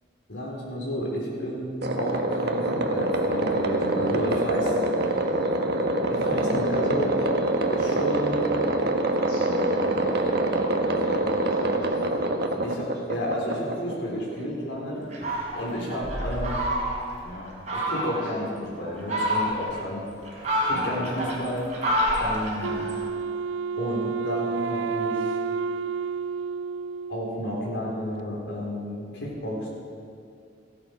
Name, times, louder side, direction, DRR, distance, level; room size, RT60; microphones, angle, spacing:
voice 1, 0.3-4.7 6.1-7.2 7.7-8.4 12.6-15.1 15.5-16.6 17.7-20.0 20.6-21.6 22.2-22.7 23.8-25.2 27.1-29.7, equal, 70° left, -3 dB, 4.6 m, -31 dB
sound 1, 1.8-14.4, right 2 dB, 60° right, 1.3 m, -25 dB
voice 2, 9.1-11.9 15.2-15.3 15.7-16.0 17.2-17.7 18.3-18.7 20.7-21.2 22.6-23.0, left 1 dB, 55° left, -6 dB, 3.2 m, -41 dB
Fowl, 15.1-17.2 17.7-18.3 18.9-19.8 20.2-23.0, equal, 40° right, 4.1 m, -28 dB
Wind instrument woodwind instrument, 22.6-27.6, right 5 dB, 75° right, 0.3 m, -30 dB
17.0 x 16.0 x 4.8 m, 2.4 s
head